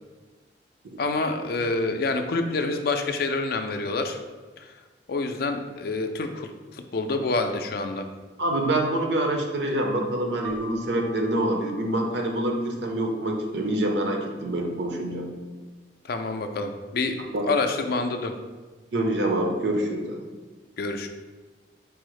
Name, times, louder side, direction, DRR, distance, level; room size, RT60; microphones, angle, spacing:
voice 1, 1.0-4.2 5.1-8.0 16.1-17.2 17.4-18.3 20.8-21.1, left 3 dB, 50° left, 6 dB, 0.4 m, -27 dB
voice 2, 8.4-15.3 17.3-17.5 18.9-20.2, right 1 dB, 65° right, 2 dB, 0.7 m, -26 dB
Keyboard (musical), 10.4-13.0, right 1 dB, 15° right, 0.4 m, -44 dB
4.7 x 2.0 x 4.7 m, 1.3 s
head